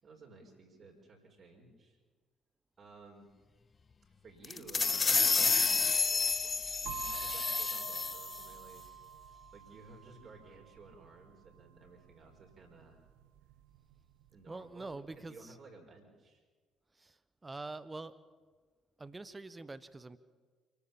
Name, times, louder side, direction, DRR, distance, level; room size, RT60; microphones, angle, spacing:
voice 1, 0.0-2.0 2.8-3.3 4.2-5.7 6.3-8.8 9.5-13.0 14.3-16.4, right 3 dB, 40° right, 0 dB, 5.1 m, -55 dB
sound 1, 4.4-8.5, left 5 dB, 30° left, 0.8 m, -30 dB
sound 2, 6.9-14.7, right 9 dB, 65° right, 1.0 m, -49 dB
voice 2, 14.5-15.3 17.0-17.1 17.4-18.1 19.0-20.2, right 3 dB, 20° right, 16 dB, 1.2 m, -44 dB
28.5 x 13.0 x 7.2 m, 1.4 s
figure-of-eight pair, 45°, 0 cm